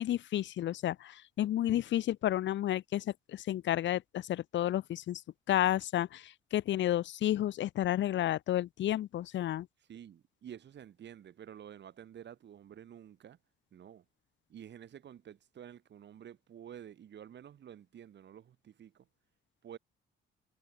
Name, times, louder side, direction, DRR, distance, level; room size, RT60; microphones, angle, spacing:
voice 1, 0.0-5.2 5.5-9.7, left 12 dB, 70° left, 0.9 m, -31 dB
voice 2, 9.9-13.4 13.7-14.1 14.5-19.1 19.6-19.8, right 9 dB, 60° right, 5.2 m, -50 dB
cardioid pair, 90°, 20 cm